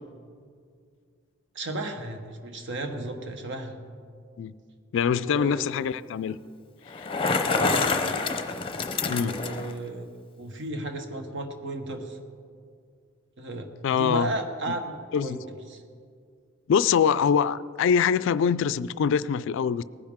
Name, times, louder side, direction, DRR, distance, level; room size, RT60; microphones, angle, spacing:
voice 1, 1.5-3.8 5.1-5.8 7.5-7.9 9.0-10.1 10.4-12.2 13.4-14.9 15.2-15.4 15.7-15.8, right 1 dB, 65° right, 1.2 m, -34 dB
voice 2, 4.9-6.4 7.0-7.1 7.4-7.5 9.1-9.4 13.8-14.3 15.1-15.4 16.7-19.8, left 7 dB, 65° left, 0.3 m, -24 dB
Bicycle, 6.9-9.7, left 4 dB, 25° left, 0.6 m, -27 dB
19.0 x 10.0 x 3.6 m
head